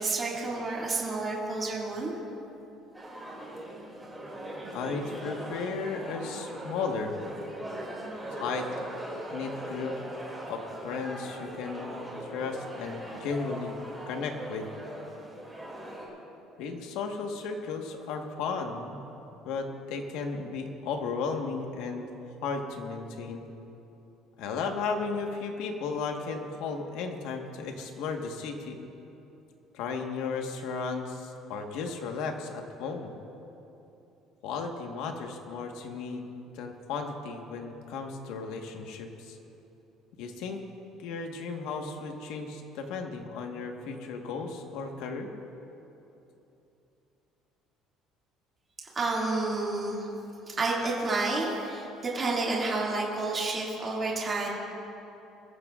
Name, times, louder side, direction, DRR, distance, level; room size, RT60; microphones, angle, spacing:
voice 1, 0.0-2.1 48.9-50.1 50.5-54.5, right 3 dB, 20° right, -4 dB, 2.3 m, -30 dB
sound 1, 2.9-16.1, right 1 dB, 5° right, 2.6 m, -40 dB
voice 2, 4.7-7.2 8.3-8.7 9.3-10.0 10.5-13.7 14.1-14.7 16.6-19.0 19.4-22.1 22.4-23.4 24.4-28.8 29.7-33.1 34.4-36.2 36.5-39.4 40.2-40.6 41.0-45.3, left 4 dB, 75° left, 3 dB, 1.4 m, -35 dB
22.0 x 14.5 x 2.5 m, 3.0 s
cardioid pair, 170°, 0 cm